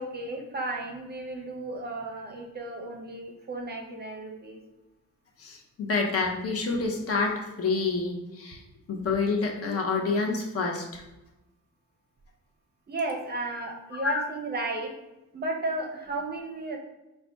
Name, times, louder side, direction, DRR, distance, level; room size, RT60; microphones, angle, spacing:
voice 1, 0.0-4.6 12.9-14.9 15.3-16.8, right 2 dB, 35° right, 2 dB, 0.5 m, -34 dB
voice 2, 5.4-8.6 8.9-11.0 14.0-14.2, left 4 dB, 50° left, 1 dB, 0.7 m, -28 dB
4.0 x 2.2 x 4.4 m, 0.99 s
wide cardioid pair, 165°, 30 cm